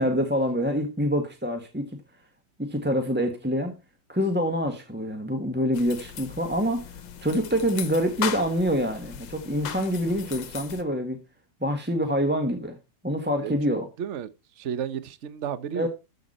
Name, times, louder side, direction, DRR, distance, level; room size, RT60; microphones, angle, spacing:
voice 1, 0.0-1.9 2.6-3.8 4.1-6.9 7.2-11.2 11.6-12.8 13.0-13.9 15.7-15.9, equal, 5° right, 1.0 m, -26 dB
sound 1, 5.7-10.8, left 9 dB, 70° left, 1.7 m, -37 dB
voice 2, 13.4-14.3 14.5-15.9, right 8 dB, 50° right, 0.9 m, -33 dB
13.0 x 7.0 x 4.2 m
omnidirectional pair, 2.2 m